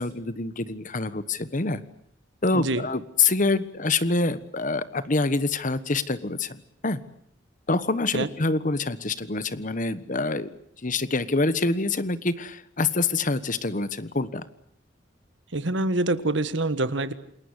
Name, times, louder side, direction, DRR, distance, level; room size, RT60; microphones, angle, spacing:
voice 1, 0.0-1.8 2.4-7.0 7.7-10.5 10.8-14.5, left 3 dB, 45° left, 15 dB, 1.3 m, -26 dB
voice 2, 2.5-2.9 8.1-8.3 15.5-17.1, right 2 dB, 70° right, 13 dB, 1.6 m, -25 dB
28.5 x 21.0 x 8.2 m, 0.70 s
head